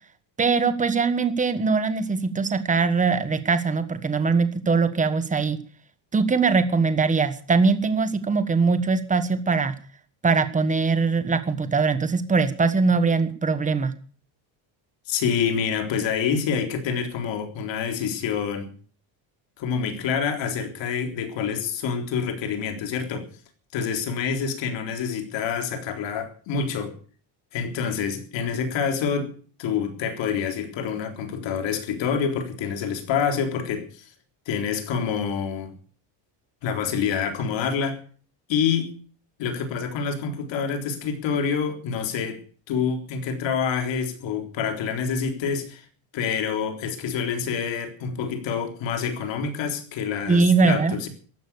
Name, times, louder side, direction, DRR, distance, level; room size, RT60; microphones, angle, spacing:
voice 1, 0.4-5.6 6.1-9.7 10.2-13.9 50.3-51.0, right 4 dB, 15° right, 1.3 m, -21 dB
voice 2, 15.1-18.7 19.6-23.3 23.7-26.9 27.5-29.3 29.6-34.1 34.5-35.7 36.6-38.0 38.5-38.9 39.4-42.4 42.7-45.9 46.1-51.1, left 6 dB, 60° left, 3.8 m, -27 dB
15.0 x 11.5 x 7.0 m
cardioid pair, 165°, 49 cm